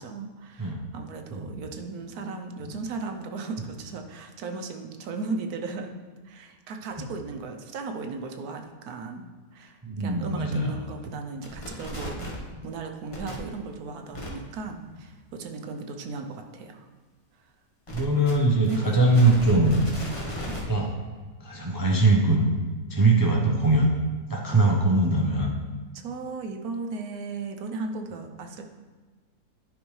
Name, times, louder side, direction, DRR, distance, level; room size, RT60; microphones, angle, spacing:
voice 1, 0.0-6.0 6.2-9.3 9.5-12.2 12.6-16.9 18.1-18.3 18.6-19.0 24.5-24.7 25.9-28.6, right 4 dB, 80° right, 4 dB, 1.2 m, -36 dB
voice 2, 9.8-10.8 17.9-19.9 20.3-20.9 21.4-22.4 22.9-23.9 24.3-25.5, right 2 dB, 25° right, -1 dB, 0.4 m, -22 dB
sound 1, 11.4-12.5 13.1-13.4 14.1-14.3 17.9-20.6, left 1 dB, 25° left, 1.1 m, -35 dB
10.5 x 5.1 x 3.2 m, 1.3 s
omnidirectional pair, 1.6 m